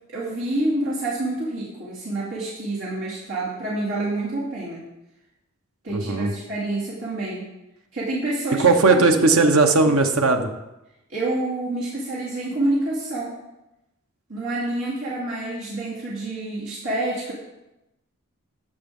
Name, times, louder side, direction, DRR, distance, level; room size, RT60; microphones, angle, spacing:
voice 1, 0.1-4.8 5.8-7.4 7.9-9.3 9.8-9.9 11.1-13.4 14.3-17.3, right 2 dB, 65° right, -8 dB, 2.7 m, -27 dB
voice 2, 5.9-6.3 8.6-10.5, right 3 dB, 85° right, 5 dB, 1.1 m, -17 dB
11.0 x 8.1 x 3.8 m, 0.94 s
head